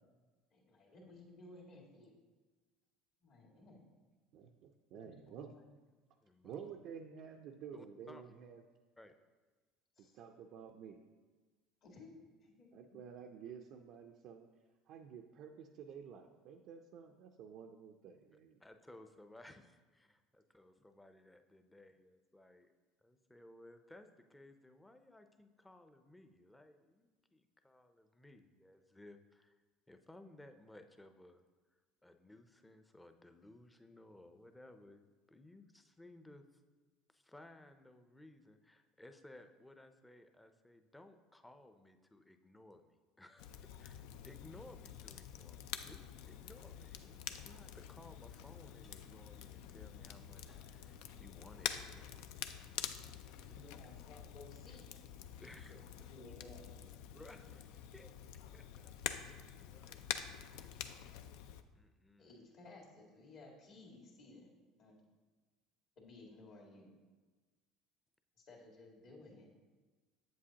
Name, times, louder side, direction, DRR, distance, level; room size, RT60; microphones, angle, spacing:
voice 1, 0.5-2.1 3.2-3.8 4.9-5.6 10.0-10.2 11.8-13.0 53.4-55.1 55.7-55.8 56.1-57.0 62.2-64.5 64.8-65.1 66.0-67.0 68.4-69.5, left 2 dB, 60° left, -2 dB, 2.0 m, -57 dB
voice 2, 4.3-5.5 6.4-8.6 10.0-11.1 12.7-14.5 14.9-18.6, right 7 dB, 60° right, 3 dB, 0.4 m, -51 dB
voice 3, 6.2-6.7 7.7-8.3 9.0-9.1 18.6-22.7 23.0-29.6 29.9-31.4 32.0-36.6 37.1-52.4 55.4-55.8 57.1-58.1 58.5-60.0 60.5-61.1 61.7-62.3, left 1 dB, 10° left, 7 dB, 0.6 m, -59 dB
Crackle, 43.4-61.6, left 9 dB, 75° left, 0.4 m, -47 dB
sound 1, 45.7-54.0, left 3 dB, 40° left, 1.5 m, -69 dB
8.0 x 7.5 x 2.8 m, 1.3 s
supercardioid pair, 95°, 0 cm